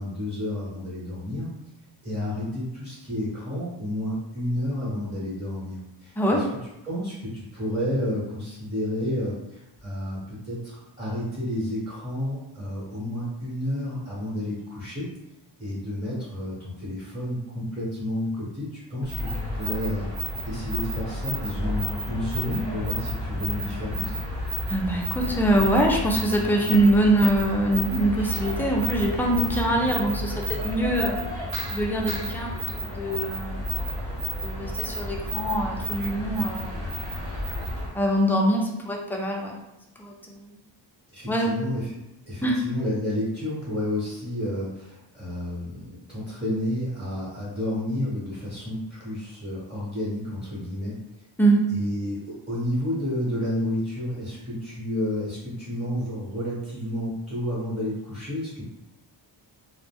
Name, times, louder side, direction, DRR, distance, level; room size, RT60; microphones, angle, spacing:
voice 1, 0.0-1.5 2.0-6.4 6.8-15.1 15.6-24.1 41.1-41.9 42.3-51.0 51.7-58.6, left 1 dB, 15° right, -9 dB, 0.9 m, -31 dB
voice 2, 6.2-6.5 24.7-31.2 31.7-33.6 34.4-36.9 37.9-39.6 40.0-40.4 41.3-41.6 42.4-42.6 51.4-51.7, right 1 dB, 5° left, -1 dB, 0.3 m, -24 dB
sound 1, 19.0-37.9, equal, 80° right, 1.0 m, -31 dB
2.5 x 2.0 x 3.4 m, 0.90 s
cardioid pair, 125°, 45 cm